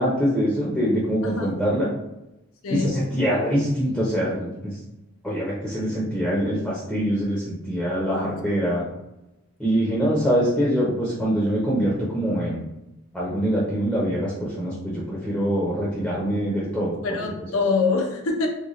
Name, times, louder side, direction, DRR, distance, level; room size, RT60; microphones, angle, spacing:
voice 1, 0.0-1.9 2.7-4.7 5.2-8.8 9.6-12.7 13.1-16.9, equal, ahead, -6 dB, 0.6 m, -24 dB
voice 2, 8.1-8.4 17.0-18.5, left 4 dB, 65° left, 2 dB, 0.6 m, -25 dB
3.8 x 2.3 x 3.1 m, 0.94 s
head